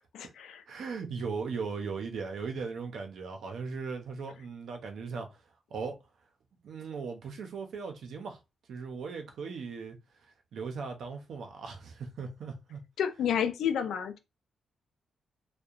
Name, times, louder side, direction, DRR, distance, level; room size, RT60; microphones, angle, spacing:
voice 1, 0.7-5.3 5.7-6.0 6.6-8.4 8.7-10.0 10.5-12.8, right 5 dB, 70° right, 0.6 m, -38 dB
voice 2, 13.0-14.2, left 8 dB, 90° left, 0.4 m, -29 dB
2.7 x 2.1 x 2.4 m
cardioid pair, 125°, 0 cm